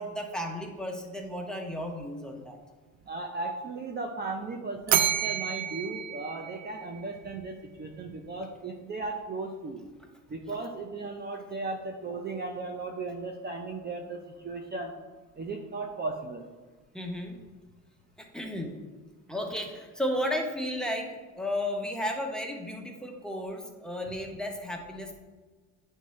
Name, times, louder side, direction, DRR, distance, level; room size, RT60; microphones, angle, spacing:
voice 1, 0.0-2.6 16.9-17.4 18.2-18.7 19.3-25.2, left 1 dB, ahead, 2 dB, 0.8 m, -34 dB
voice 2, 3.0-9.8 10.3-14.9 15.3-16.5, right 3 dB, 25° right, 1 dB, 0.6 m, -36 dB
Bell, 4.9-7.2, right 10 dB, 75° right, 0.6 m, -29 dB
8.9 x 3.3 x 3.1 m, 1.3 s
cardioid pair, 105°, 37 cm